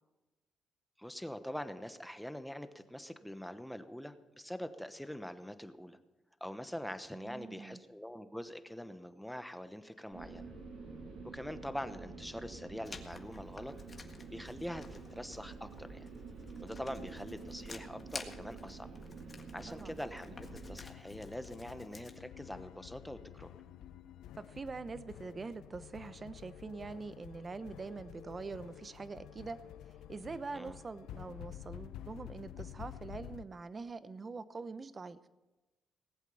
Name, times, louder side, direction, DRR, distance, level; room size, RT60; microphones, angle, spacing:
voice 1, 1.0-6.0 6.4-10.5 11.3-13.7 14.3-16.1 16.6-18.9 19.5-23.5 30.5-30.8, equal, 5° left, 10 dB, 1.0 m, -44 dB
voice 2, 7.1-7.8 19.7-20.0 24.3-29.6 30.1-35.2, right 4 dB, 35° right, 14 dB, 0.8 m, -44 dB
sound 1, 10.1-20.8, right 4 dB, 70° right, 6.6 m, -48 dB
Writing, 12.8-22.2, left 4 dB, 35° left, 1.7 m, -52 dB
sound 2, 20.3-33.4, left 11 dB, 85° left, 0.6 m, -50 dB
19.0 x 8.2 x 7.0 m, 1.1 s
cardioid pair, 90°, 0 cm